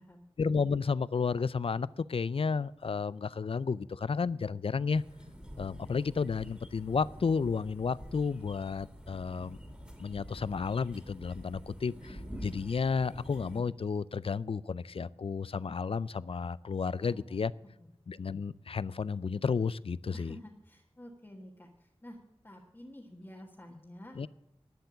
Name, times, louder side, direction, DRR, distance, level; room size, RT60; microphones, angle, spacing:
voice 1, 0.4-5.0 5.6-9.6 10.0-17.5 18.1-20.4 24.2-24.3, left 5 dB, 65° left, 20 dB, 0.4 m, -32 dB
sound 1, 4.9-13.6, equal, 10° right, 2.3 m, -47 dB
voice 2, 16.9-17.4 17.8-17.9 20.1-22.2 22.4-24.3, left 1 dB, 20° left, -1 dB, 1.5 m, -50 dB
11.5 x 6.9 x 9.7 m, 0.90 s
wide cardioid pair, 80°, 11 cm